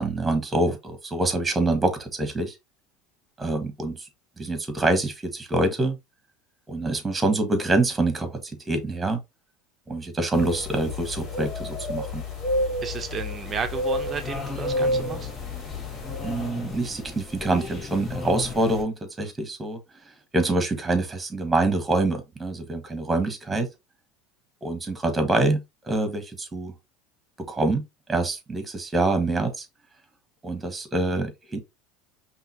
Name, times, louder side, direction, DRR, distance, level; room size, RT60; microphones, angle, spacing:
voice 1, 0.0-2.5 3.4-4.1 4.4-6.0 6.7-9.2 9.9-12.2 16.2-19.8 20.3-23.7 24.6-26.7 27.4-27.8 28.1-29.7 30.4-31.6, right 2 dB, 15° right, 1.6 m, -25 dB
sound 1, 10.3-16.5, left 1 dB, 45° left, 2.4 m, -30 dB
voice 2, 12.8-15.3, right 6 dB, 30° right, 0.8 m, -33 dB
sound 2, 13.5-18.8, left 4 dB, 30° left, 1.9 m, -37 dB
5.5 x 2.9 x 2.9 m
hypercardioid pair, 85°, 0 cm